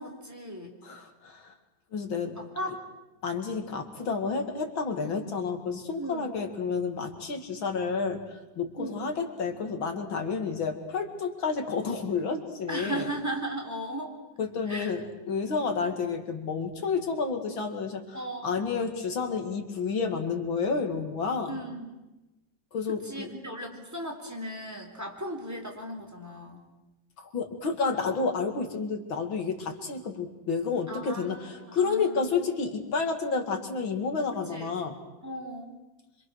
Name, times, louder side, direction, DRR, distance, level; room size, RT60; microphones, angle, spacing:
voice 1, 0.0-0.8 2.4-2.8 5.0-5.3 6.0-6.3 8.8-9.1 12.7-14.2 14.7-14.9 18.1-18.6 21.5-22.0 22.9-26.6 30.9-32.3 34.3-34.7 35.2-35.7, right 1 dB, 10° right, 1 dB, 3.8 m, -37 dB
voice 2, 0.8-1.5 1.9-2.4 3.2-13.1 14.4-18.2 18.4-21.6 22.7-23.3 27.2-34.9, left 5 dB, 85° left, 5 dB, 3.1 m, -30 dB
26.5 x 25.5 x 6.5 m, 1.1 s
omnidirectional pair, 2.1 m